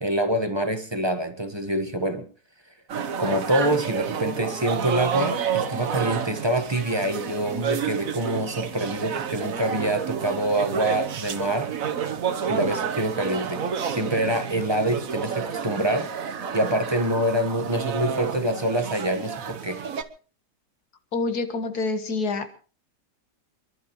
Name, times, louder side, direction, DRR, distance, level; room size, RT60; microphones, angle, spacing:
voice 1, 0.0-2.2 3.2-11.7 12.5-16.1 16.5-19.8, right 1 dB, 15° right, 6 dB, 1.1 m, -26 dB
sound 1, 2.9-20.0, right 7 dB, 55° right, 1.4 m, -30 dB
voice 2, 21.1-22.5, left 3 dB, 60° left, 8 dB, 2.1 m, -27 dB
28.5 x 11.5 x 3.1 m, 0.38 s
omnidirectional pair, 1.9 m